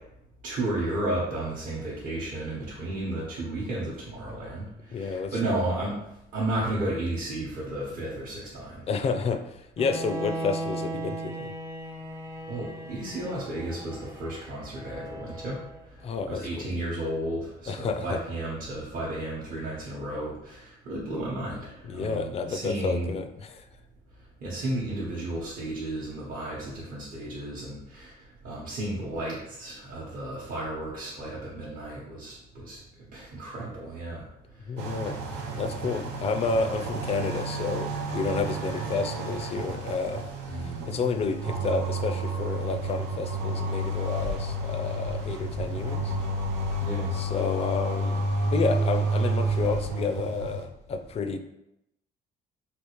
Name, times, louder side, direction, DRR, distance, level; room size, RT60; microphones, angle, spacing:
voice 1, 0.4-6.0 6.3-8.8 12.5-15.6 16.3-23.1 24.4-32.8 33.1-34.2 40.5-40.9 46.8-47.1, right 1 dB, 55° right, -7 dB, 0.9 m, -33 dB
voice 2, 4.9-5.7 8.9-11.5 16.0-16.7 17.7-18.2 21.8-23.7 34.7-35.2 35.6-46.2 47.1-51.4, left 4 dB, 35° left, 8 dB, 0.4 m, -30 dB
Bowed string instrument, 9.8-15.8, right 2 dB, 15° right, 0.5 m, -37 dB
sound 1, 34.8-50.6, right 2 dB, 90° right, 0.5 m, -30 dB
3.5 x 2.4 x 3.0 m, 0.84 s
cardioid pair, 110°, 17 cm